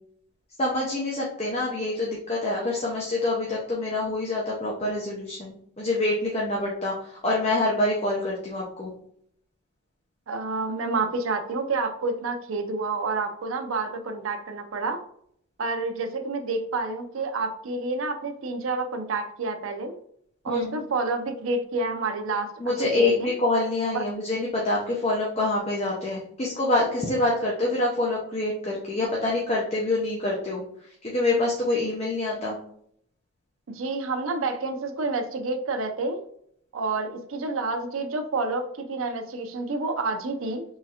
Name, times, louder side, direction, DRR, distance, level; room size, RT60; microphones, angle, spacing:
voice 1, 0.6-8.9 20.5-20.8 22.6-30.6 31.0-32.6, left 2 dB, 30° left, -3 dB, 0.6 m, -26 dB
voice 2, 10.3-15.0 15.6-20.0 20.4-23.4 23.9-24.0 33.7-36.2 36.7-40.6, right 3 dB, 75° right, 7 dB, 0.5 m, -29 dB
3.8 x 3.1 x 2.8 m, 0.67 s
head